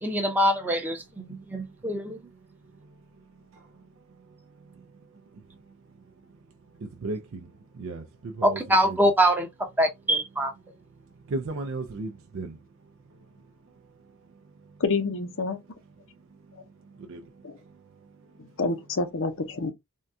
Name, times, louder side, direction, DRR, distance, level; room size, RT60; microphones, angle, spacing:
voice 1, 0.0-2.2 8.4-9.5 9.8-10.5, equal, 10° right, 0.7 m, -24 dB
voice 2, 6.8-7.4 7.8-8.6 8.8-9.0 11.3-12.5 17.1-17.2, right 3 dB, 60° right, 0.4 m, -34 dB
voice 3, 14.8-15.6 17.4-17.5 18.6-19.7, left 3 dB, 60° left, 0.7 m, -27 dB
3.6 x 2.3 x 2.6 m
head